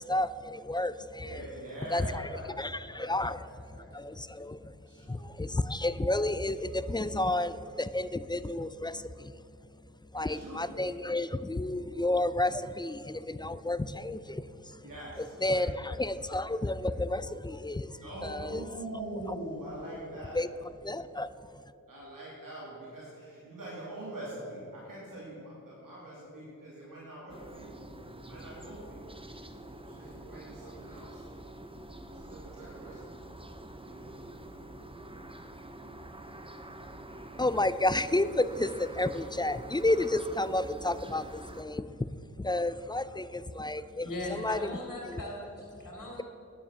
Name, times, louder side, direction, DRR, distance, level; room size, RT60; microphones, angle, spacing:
voice 1, 0.0-1.3 1.9-2.1 2.6-3.4 3.9-4.7 5.1-9.3 10.1-14.8 15.4-18.6 20.4-20.5 20.8-21.3 37.4-41.9 42.4-44.7 45.0-45.2, left 2 dB, 15° left, 14 dB, 0.4 m, -31 dB
voice 2, 1.2-4.1 4.8-5.2 10.1-10.7 14.8-15.9 16.5-16.9 18.0-20.4 21.9-27.7 28.2-29.1 29.7-31.3 32.0-33.1 33.7-34.1 42.9-43.4, right 1 dB, 85° right, -7 dB, 2.6 m, -44 dB
sound 1, 27.3-41.6, right 1 dB, 15° right, 0.9 m, -46 dB
voice 3, 44.0-46.2, left 1 dB, 70° left, -2 dB, 2.9 m, -39 dB
10.0 x 9.6 x 5.6 m, 2.8 s
cardioid pair, 45°, 32 cm